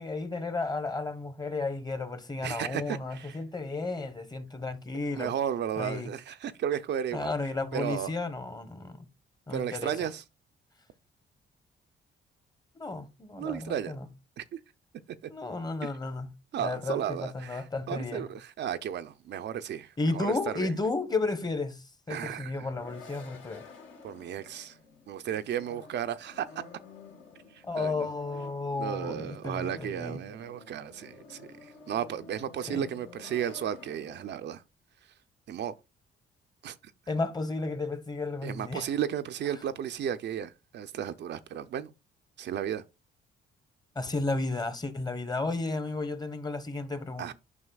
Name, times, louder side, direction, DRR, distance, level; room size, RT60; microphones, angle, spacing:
voice 1, 0.0-5.3 5.8-6.1 7.1-9.0 9.5-9.9 12.7-14.0 15.3-16.3 16.6-18.3 20.0-23.6 27.6-30.2 32.7-32.9 37.1-38.9 43.9-47.3, left 3 dB, 20° left, 1.0 m, -33 dB
voice 2, 2.4-3.4 5.1-7.3 7.7-8.1 9.5-10.2 13.4-13.9 14.4-14.6 15.8-15.9 16.5-20.7 22.1-22.7 24.0-24.8 25.1-26.6 27.5-28.1 28.7-34.6 35.5-35.7 36.6-36.8 38.4-41.9 42.4-42.8 47.2-47.3, right 9 dB, 60° right, 0.5 m, -34 dB
sound 1, 22.3-34.3, left 4 dB, 75° left, 2.3 m, -51 dB
9.7 x 5.5 x 2.3 m
cardioid pair, 90°, 20 cm